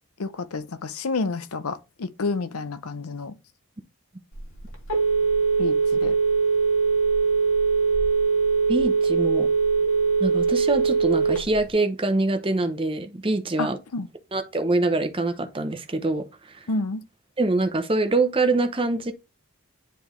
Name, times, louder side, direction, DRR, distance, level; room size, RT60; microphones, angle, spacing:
voice 1, 0.2-3.4 5.6-6.2 13.6-14.1 16.7-17.0, left 3 dB, 90° left, 0.7 m, -29 dB
Telephone, 4.3-11.7, right 5 dB, 70° left, 2.0 m, -21 dB
voice 2, 8.7-9.5 10.2-13.8 14.3-16.3 16.5-16.7 17.4-19.1, right 2 dB, 25° right, 0.7 m, -24 dB
10.0 x 3.5 x 3.1 m
head